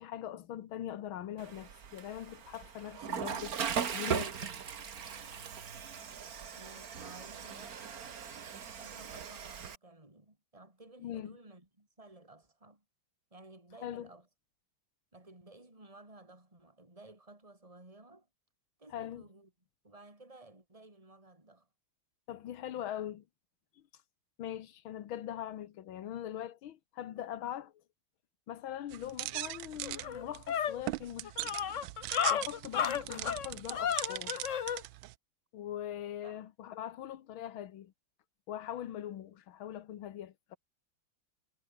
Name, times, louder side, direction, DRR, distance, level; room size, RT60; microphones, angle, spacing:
voice 1, 0.0-4.5 11.0-11.4 13.8-14.1 18.9-19.2 22.3-23.2 23.8-23.9 24.4-27.8 28.5-31.6 32.3-34.4 35.5-37.9 38.5-40.6, left 11 dB, 75° left, 1.9 m, -42 dB
Water / Toilet flush, 1.4-9.8, right 7 dB, 45° right, 1.8 m, -39 dB
voice 2, 6.6-8.3 8.8-12.8 13.3-14.3 15.1-18.3 18.8-19.5 19.8-21.7 33.0-33.2 36.2-36.4, right 2 dB, 15° right, 4.7 m, -55 dB
sound 1, 28.9-35.1, right 17 dB, 75° right, 1.2 m, -40 dB
sound 2, 29.3-29.4 29.8-34.8, left 8 dB, 50° left, 1.0 m, -33 dB
omnidirectional pair, 2.3 m